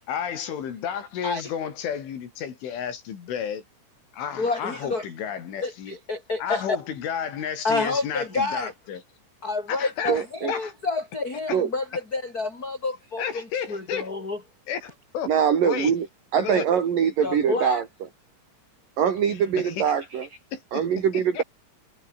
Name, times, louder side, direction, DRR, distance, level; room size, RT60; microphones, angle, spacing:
voice 1, 0.1-3.6 4.1-6.0 6.4-9.0 9.7-10.7 11.5-11.6 13.2-14.1 14.7-15.3 15.6-15.9 16.4-16.7 19.6-19.9 20.5-20.8 21.1-21.4, left 8 dB, 75° left, 5.9 m, -32 dB
voice 2, 4.4-5.0 5.6-6.6 7.6-8.7 9.4-13.4 13.7-14.4 17.2-17.8, left 3 dB, 20° left, 5.4 m, -29 dB
voice 3, 10.1-10.5 11.5-11.7 15.3-16.1 16.3-17.8 19.0-20.3 20.7-21.4, right 8 dB, 50° right, 4.2 m, -23 dB
omnidirectional pair, 5.6 m